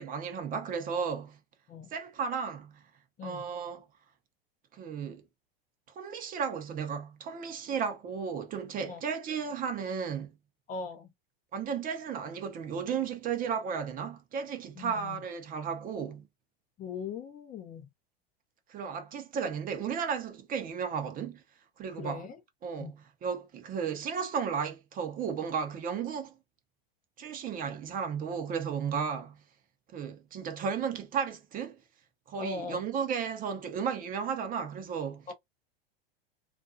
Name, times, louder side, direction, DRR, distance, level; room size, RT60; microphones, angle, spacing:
voice 1, 0.0-1.4 1.9-2.7 3.2-3.8 4.7-5.2 6.0-10.3 11.5-16.2 18.7-21.4 21.8-22.2 22.6-26.3 27.2-29.4 29.9-31.8 32.3-35.3, right 6 dB, 30° right, 0.6 m, -34 dB
voice 2, 3.2-3.5 8.9-9.0 10.7-11.1 14.8-15.2 16.8-17.9 21.9-22.4 22.8-22.9 32.4-32.8 35.3-35.4, left 4 dB, 25° left, 0.6 m, -40 dB
2.4 x 2.3 x 2.5 m
hypercardioid pair, 115°, 30 cm